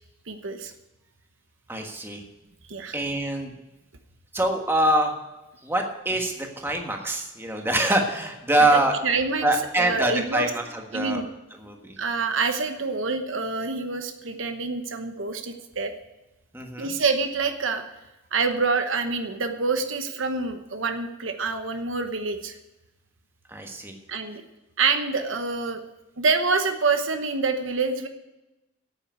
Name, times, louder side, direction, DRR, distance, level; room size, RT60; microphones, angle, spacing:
voice 1, 0.3-0.7 2.7-3.0 8.6-9.5 9.8-10.5 10.9-11.2 12.0-15.9 16.8-17.8 18.3-22.6 24.1-24.4 24.8-25.8 26.2-28.1, right 4 dB, 75° right, 7 dB, 1.1 m, -26 dB
voice 2, 1.7-2.2 2.9-3.5 4.3-5.1 5.6-8.9 9.4-11.2 11.6-12.0 16.5-16.9 23.5-23.9, right 1 dB, 10° right, 2 dB, 1.4 m, -24 dB
9.2 x 8.7 x 9.3 m, 0.99 s
head